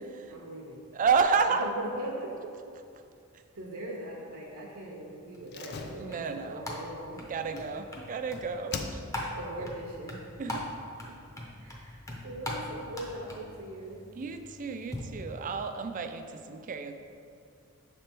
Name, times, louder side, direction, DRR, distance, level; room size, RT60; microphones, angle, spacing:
voice 1, 0.0-0.8 1.6-1.7 2.0-2.4 3.5-7.2 9.3-10.5 11.6-14.0, right 1 dB, 65° right, -2 dB, 0.7 m, -41 dB
voice 2, 0.9-1.7 6.0-6.6 7.2-9.4 10.4-10.6 14.1-17.0, right 5 dB, 35° right, 7 dB, 0.3 m, -30 dB
sound 1, 5.3-15.0, left 1 dB, 15° left, 0.7 m, -42 dB
Slam, 5.5-8.2 8.7-9.4 9.7-9.8, left 4 dB, 50° left, 0.4 m, -41 dB
6.8 x 3.3 x 4.4 m, 2.4 s
head